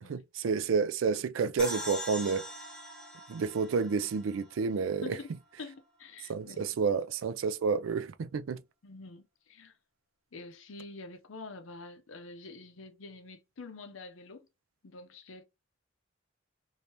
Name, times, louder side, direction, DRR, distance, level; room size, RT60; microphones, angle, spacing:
voice 1, 0.1-2.5 3.3-5.2 6.3-8.6, right 5 dB, 80° right, 0.4 m, -30 dB
sound 1, 1.6-4.9, equal, 5° left, 0.9 m, -42 dB
voice 2, 5.0-5.3 5.6-6.8 8.8-9.7 10.3-14.5 14.8-15.4, left 3 dB, 80° left, 0.6 m, -47 dB
3.3 x 2.7 x 2.9 m
head